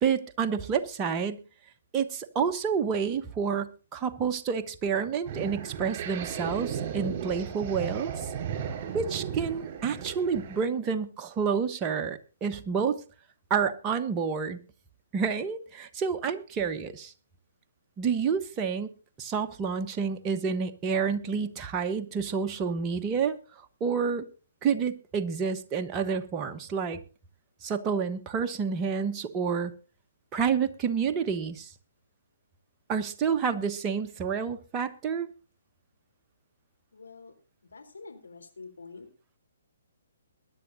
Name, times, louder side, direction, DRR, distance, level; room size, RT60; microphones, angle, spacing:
voice 1, 0.0-1.4 1.9-8.3 8.9-13.0 13.5-14.6 15.1-17.1 18.0-18.9 19.2-23.3 23.8-24.3 24.6-27.0 27.6-29.7 30.3-31.7 32.9-35.3, right 6 dB, 20° right, 1.1 m, -29 dB
sound 1, 5.3-10.6, right 8 dB, 35° right, 5.0 m, -35 dB
voice 2, 36.9-37.3 37.7-39.1, left 4 dB, 75° left, 3.7 m, -46 dB
22.0 x 10.5 x 2.7 m
figure-of-eight pair, 130°, 0 cm